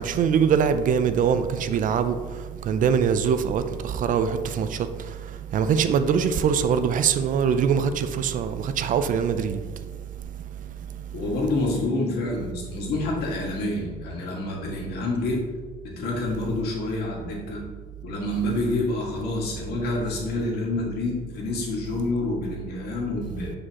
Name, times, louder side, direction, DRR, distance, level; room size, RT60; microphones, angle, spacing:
voice 1, 0.0-2.2 2.7-4.8 5.5-9.6, right 7 dB, 50° right, 0.5 m, -22 dB
voice 2, 11.1-15.4 15.8-17.6 18.0-23.5, left 2 dB, 70° left, 1.9 m, -28 dB
8.3 x 4.9 x 2.9 m
cardioid pair, 110°, 17 cm